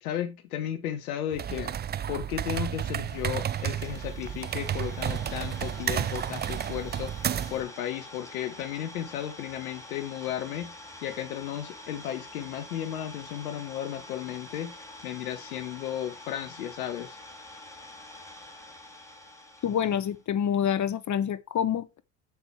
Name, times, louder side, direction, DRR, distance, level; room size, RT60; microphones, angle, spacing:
voice 1, 0.0-1.7 2.1-17.2, left 11 dB, 85° left, 1.2 m, -34 dB
sound 1, 1.3-7.7, right 9 dB, 25° right, 0.5 m, -32 dB
Idling, 2.5-20.2, left 1 dB, 5° left, 5.0 m, -46 dB
voice 2, 19.6-22.0, left 9 dB, 40° left, 1.4 m, -27 dB
8.0 x 7.0 x 4.6 m
hypercardioid pair, 70°, 43 cm